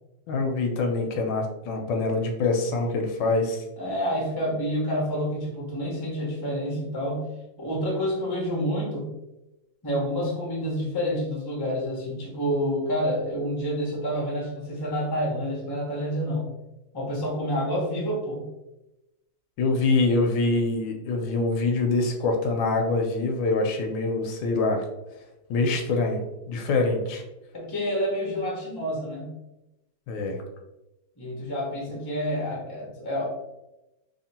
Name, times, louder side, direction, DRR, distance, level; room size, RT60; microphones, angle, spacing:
voice 1, 0.3-3.6 19.6-24.8 25.5-26.2 26.5-27.2 30.1-30.4, left 3 dB, 80° left, 2 dB, 1.3 m, -25 dB
voice 2, 3.8-7.3 7.6-9.1 9.8-16.5 16.9-18.5 27.5-29.3 31.2-33.3, equal, 20° left, -3 dB, 0.6 m, -28 dB
3.0 x 2.9 x 4.1 m, 0.97 s
omnidirectional pair, 2.1 m